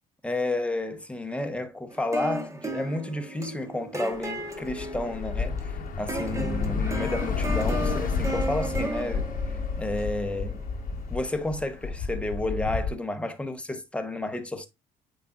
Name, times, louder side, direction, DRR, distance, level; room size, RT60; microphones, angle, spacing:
voice 1, 0.2-10.6 11.1-14.7, left 2 dB, 5° left, 1.1 m, -31 dB
sound 1, 1.9-11.2, right 1 dB, 15° right, 1.3 m, -35 dB
Bus / Traffic noise roadway noise, 4.1-12.9, left 4 dB, 55° left, 1.1 m, -31 dB
8.2 x 5.1 x 2.4 m
cardioid pair, 110°, 17 cm